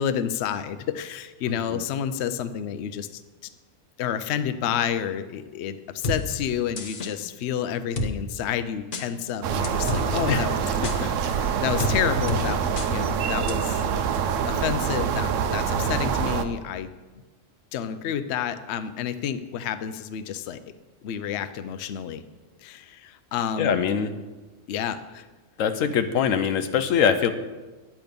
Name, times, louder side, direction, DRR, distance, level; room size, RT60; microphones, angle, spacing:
voice 1, 0.0-3.5 4.0-10.6 10.9-11.2 11.6-13.8 14.5-16.9 17.7-20.6 21.0-22.2 22.6-23.9 24.7-25.3, left 9 dB, 65° left, 12 dB, 0.8 m, -30 dB
voice 2, 1.5-1.8 10.3-10.4 10.8-10.9 11.2-11.6 12.4-12.5 23.6-24.1 25.6-27.3, left 7 dB, 90° left, 9 dB, 1.1 m, -24 dB
sound 1, 6.0-6.2 6.8-7.1 8.0-8.1 8.9-9.1 9.6-10.0 10.8-11.0 11.8-11.9 12.3-12.4 12.8-12.9 13.5-13.6, left 2 dB, 45° left, 1.0 m, -28 dB
sound 2, 9.4-16.5, right 7 dB, 75° right, 1.0 m, -25 dB
10.0 x 8.5 x 5.2 m, 1.2 s
omnidirectional pair, 1.3 m